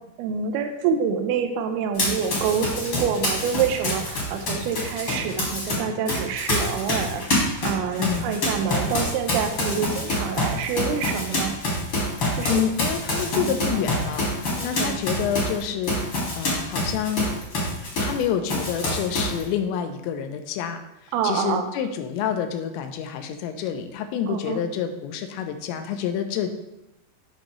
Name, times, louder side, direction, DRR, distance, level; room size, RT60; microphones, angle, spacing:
voice 1, 0.2-11.5 12.3-12.6 13.3-13.8 14.6-15.0 21.1-21.7 24.3-24.6, right 7 dB, 85° right, 6 dB, 2.2 m, -27 dB
Run, 1.9-5.7 6.1-18.2 18.5-19.4, left 1 dB, 45° left, 1.7 m, -26 dB
voice 2, 8.0-8.3 12.5-17.3 18.0-20.8 21.2-26.5, left 8 dB, 85° left, 7 dB, 2.9 m, -28 dB
8.7 x 5.5 x 3.1 m, 0.89 s
omnidirectional pair, 5.1 m